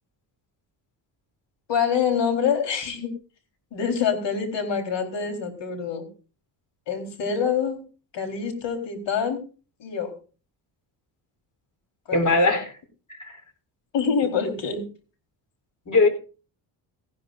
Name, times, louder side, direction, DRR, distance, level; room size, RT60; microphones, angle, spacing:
voice 1, 1.7-3.1 3.7-6.1 6.9-7.8 8.1-9.4 9.8-10.1 12.1-12.4 13.9-14.8, left 6 dB, 70° left, 5 dB, 4.3 m, -26 dB
voice 2, 12.1-12.7 13.2-13.4 14.3-14.4 15.9-16.1, left 3 dB, 40° left, 9 dB, 3.8 m, -20 dB
18.0 x 15.0 x 2.6 m, 0.34 s
cardioid pair, 110°, 45 cm